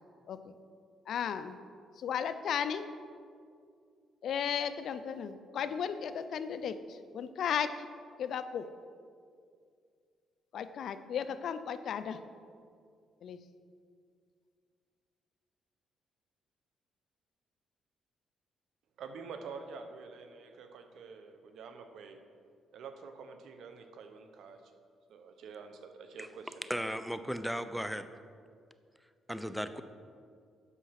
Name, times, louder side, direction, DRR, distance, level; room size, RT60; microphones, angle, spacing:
voice 1, 1.1-1.6 2.0-2.9 4.2-7.7 8.2-8.7 10.5-12.2 13.2-13.4, left 8 dB, 65° left, 11 dB, 0.5 m, -35 dB
voice 2, 19.0-22.2 22.7-24.7 25.1-26.7, right 5 dB, 75° right, 6 dB, 0.9 m, -47 dB
voice 3, 26.7-28.1 29.3-29.8, equal, ahead, 10 dB, 0.5 m, -35 dB
8.0 x 5.8 x 5.8 m, 2.2 s
cardioid pair, 90°, 0 cm